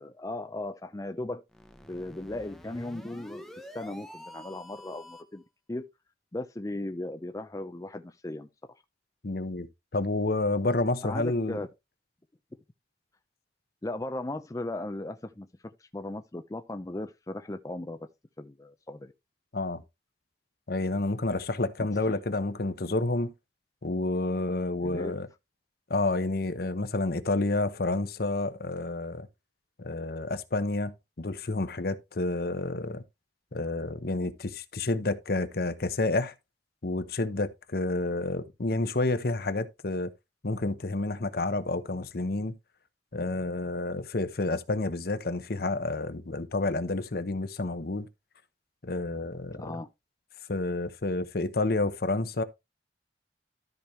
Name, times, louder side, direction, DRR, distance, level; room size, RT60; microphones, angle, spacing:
voice 1, 0.0-1.4 1.9-5.4 5.7-5.9 6.3-8.8 11.0-11.7 13.8-15.5 15.8-18.0 18.4-19.1 22.1-22.2 24.8-25.1 49.6-49.9, left 2 dB, 20° left, 0.5 m, -37 dB
sound 1, 1.5-5.4, equal, ahead, 0.9 m, -47 dB
voice 2, 9.2-9.7 9.9-11.6 19.5-19.8 20.7-23.3 23.8-25.3 25.9-29.3 29.8-33.0 33.5-36.3 36.8-40.1 40.4-42.5 43.1-48.1 48.8-49.8 50.5-52.4, left 2 dB, 60° left, 0.9 m, -29 dB
13.0 x 5.1 x 3.1 m
head